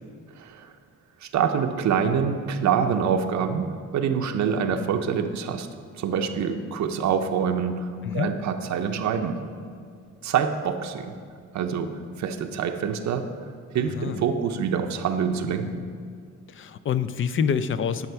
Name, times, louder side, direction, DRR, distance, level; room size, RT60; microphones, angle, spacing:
voice 1, 0.4-0.7 1.2-5.7 6.0-9.4 10.2-11.2 11.5-13.3 13.7-15.9, right 7 dB, 70° right, 6 dB, 0.7 m, -26 dB
voice 2, 13.9-14.2 16.5-18.1, left 7 dB, 45° left, 12 dB, 0.5 m, -26 dB
11.0 x 5.8 x 4.7 m, 2.2 s
cardioid pair, 90°, 30 cm